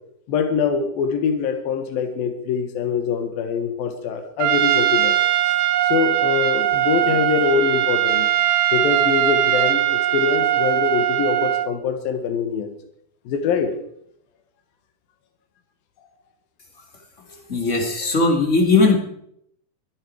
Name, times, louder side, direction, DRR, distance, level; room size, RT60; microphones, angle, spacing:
voice 1, 0.3-5.2 5.4-5.6 5.9-12.7 13.3-13.7 17.3-17.4, left 6 dB, 75° left, 6 dB, 3.3 m, -24 dB
Trumpet, 4.4-11.7, right 13 dB, 85° right, 2.7 m, -20 dB
voice 2, 17.5-19.0, left 3 dB, 20° left, 1 dB, 2.7 m, -18 dB
23.0 x 10.0 x 4.8 m, 0.71 s
omnidirectional pair, 4.2 m